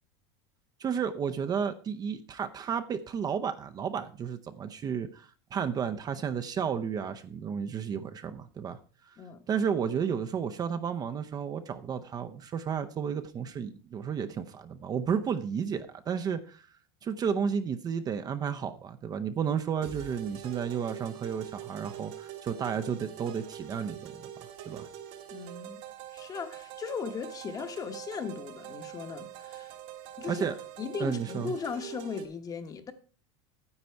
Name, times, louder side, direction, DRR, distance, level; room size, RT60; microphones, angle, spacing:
voice 1, 0.8-8.8 9.1-9.2 9.5-16.7 17.0-24.3 24.7-24.9 30.3-30.5 31.0-31.5, right 7 dB, 25° right, 0.6 m, -32 dB
sound 1, 19.8-32.3, right 11 dB, 65° right, 1.6 m, -44 dB
voice 2, 25.3-25.8 26.1-29.7 30.2-30.5 30.8-32.9, left 5 dB, 25° left, 1.1 m, -37 dB
9.7 x 8.1 x 4.5 m
supercardioid pair, 130°, 14 cm